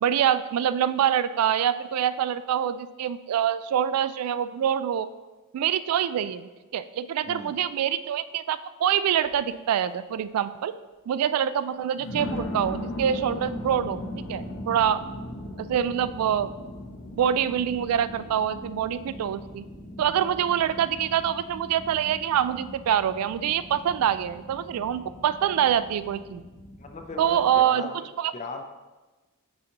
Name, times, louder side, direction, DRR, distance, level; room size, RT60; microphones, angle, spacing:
voice 1, 0.0-5.1 5.5-10.7 11.1-15.0 15.6-16.5 17.2-19.6 20.0-26.4 27.2-27.9 28.2-28.3, right 9 dB, 75° right, 16 dB, 0.3 m, -25 dB
voice 2, 7.3-7.6 26.8-28.6, left 3 dB, 35° left, 4 dB, 0.5 m, -38 dB
sound 1, 9.2-9.5 10.1-10.2 12.0-27.5, left 1 dB, 70° left, 1.0 m, -39 dB
9.5 x 4.0 x 2.9 m, 1.2 s
head